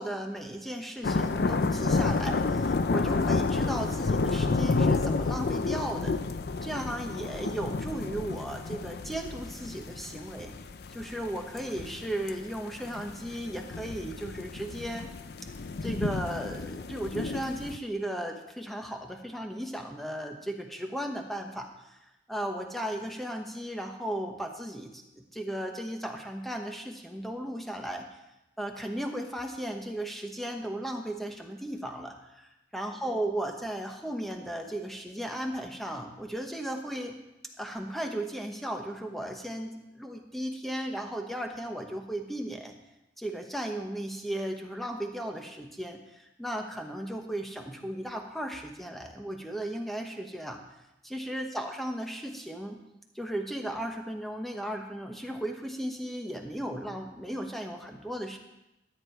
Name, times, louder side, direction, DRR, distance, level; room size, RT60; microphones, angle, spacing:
voice 1, 0.0-6.2 6.6-10.6 10.9-15.2 15.8-22.0 22.3-28.1 28.6-37.2 37.6-42.8 43.2-50.6 51.0-52.8 53.1-58.4, right 1 dB, ahead, 3 dB, 1.1 m, -36 dB
sound 1, 1.0-17.8, left 3 dB, 60° left, 0.5 m, -30 dB
13.0 x 9.2 x 4.6 m, 0.91 s
head